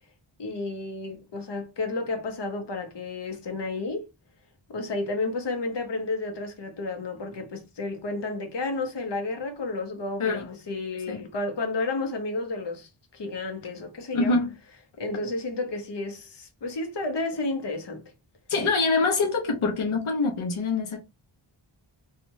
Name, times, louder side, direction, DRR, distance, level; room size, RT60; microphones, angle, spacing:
voice 1, 0.4-4.1 4.7-14.4 15.0-18.1, left 3 dB, 60° left, 0.9 m, -31 dB
voice 2, 14.1-14.5 18.5-21.0, left 3 dB, 90° left, 0.8 m, -25 dB
3.0 x 2.4 x 2.6 m
wide cardioid pair, 65°, 48 cm